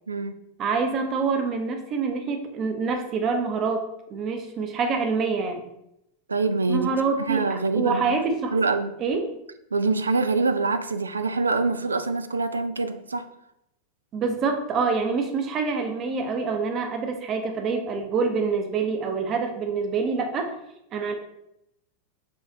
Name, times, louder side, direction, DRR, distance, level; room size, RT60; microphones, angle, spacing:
voice 1, 0.6-3.8 4.1-5.6 6.7-8.6 9.0-9.3 14.1-20.5 20.9-21.1, right 4 dB, 30° right, 4 dB, 0.7 m, -26 dB
voice 2, 6.3-8.2 8.5-8.9 9.7-13.3, right 3 dB, 75° right, 10 dB, 0.3 m, -25 dB
5.0 x 2.5 x 3.9 m, 0.82 s
figure-of-eight pair, 90°, 0 cm